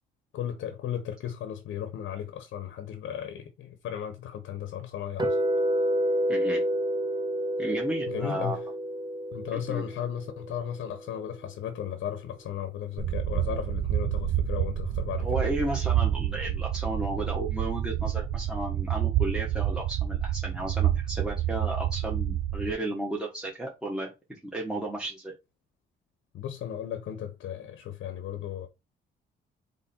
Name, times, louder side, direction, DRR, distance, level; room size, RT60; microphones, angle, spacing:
voice 1, 0.3-5.4 8.1-8.6 9.3-15.3 26.3-28.7, left 10 dB, 75° left, 0.8 m, -35 dB
sound 1, 5.2-11.3, right 1 dB, 20° right, 1.0 m, -29 dB
voice 2, 6.3-6.6 7.6-8.6 9.7-9.8 15.2-25.3, right 1 dB, 5° right, 1.3 m, -33 dB
sound 2, 13.0-22.7, right 11 dB, 55° right, 0.6 m, -28 dB
3.6 x 3.4 x 4.2 m
cardioid pair, 90°, 20 cm